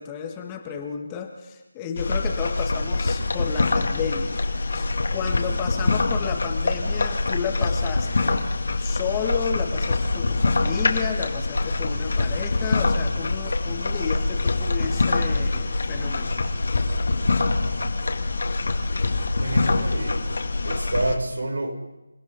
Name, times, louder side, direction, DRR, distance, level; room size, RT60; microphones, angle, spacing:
voice 1, 0.0-4.4 4.7-8.4 8.8-16.3, left 7 dB, 10° left, 4 dB, 1.4 m, -32 dB
sound 1, 2.0-21.1, left 3 dB, 55° left, 2.6 m, -24 dB
voice 2, 19.4-20.2 20.6-21.7, right 2 dB, 75° right, 2 dB, 6.0 m, -28 dB
28.5 x 16.5 x 5.5 m, 1.0 s
figure-of-eight pair, 170°, 0 cm